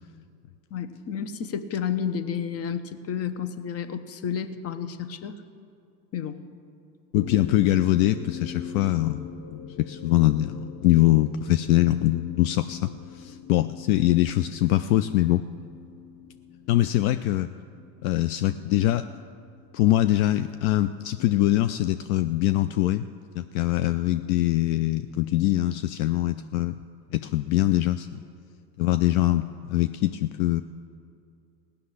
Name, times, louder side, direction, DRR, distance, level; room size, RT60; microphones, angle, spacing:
voice 1, 0.7-5.3 6.1-6.4, left 8 dB, 30° left, 11 dB, 0.9 m, -31 dB
voice 2, 7.1-15.4 16.7-17.5 18.0-19.1 19.7-23.0 23.3-26.7 27.1-28.2 28.8-30.6, left 15 dB, 60° left, 12 dB, 0.5 m, -23 dB
sound 1, 7.2-22.0, left 7 dB, 85° left, 1.4 m, -43 dB
16.5 x 6.8 x 9.8 m, 2.4 s
supercardioid pair, 110°, 49 cm